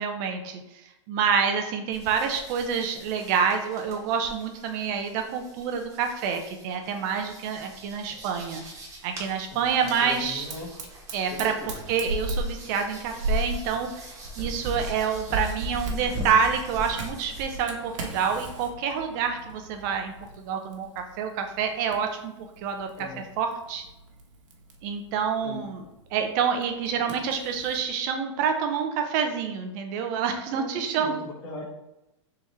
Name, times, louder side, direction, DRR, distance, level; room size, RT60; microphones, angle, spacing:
voice 1, 0.0-8.6 9.0-10.5 11.1-22.9 23.4-23.8 24.8-31.2, right 6 dB, 40° right, 5 dB, 0.5 m, -28 dB
sound 1, 1.9-17.6, equal, 20° right, 1.0 m, -39 dB
voice 2, 10.0-10.7 11.3-11.7 23.0-23.3 25.4-25.6 30.6-31.6, left 2 dB, 50° left, -1 dB, 1.3 m, -39 dB
Fire, 10.5-27.8, right 1 dB, 80° right, 1.0 m, -38 dB
3.6 x 2.8 x 4.3 m, 0.92 s
supercardioid pair, 150°, 16 cm